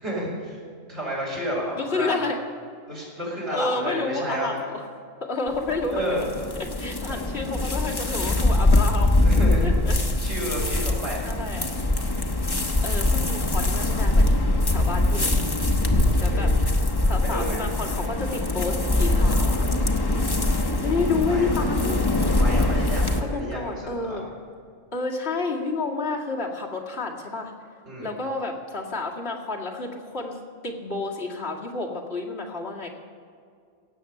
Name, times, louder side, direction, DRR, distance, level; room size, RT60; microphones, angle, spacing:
voice 1, 0.0-0.6 0.9-2.2 2.9-4.6 5.9-6.2 7.1-7.2 9.2-9.7 10.2-11.3 16.3-16.5 17.2-17.7 21.3-21.5 22.3-24.3 27.9-28.1, equal, 60° right, -5 dB, 5.2 m, -31 dB
voice 2, 1.8-2.4 3.5-4.8 5.2-6.3 6.6-9.3 9.6-10.2 10.5-10.6 11.2-11.7 12.8-15.3 16.2-16.5 17.1-19.6 20.8-22.1 23.2-24.3 24.9-27.5 28.0-32.9, left 3 dB, 55° left, -2 dB, 2.2 m, -30 dB
sound 1, 5.5-23.2, left 2 dB, 20° left, 0.8 m, -22 dB
17.5 x 7.8 x 6.8 m, 2.2 s
omnidirectional pair, 1.3 m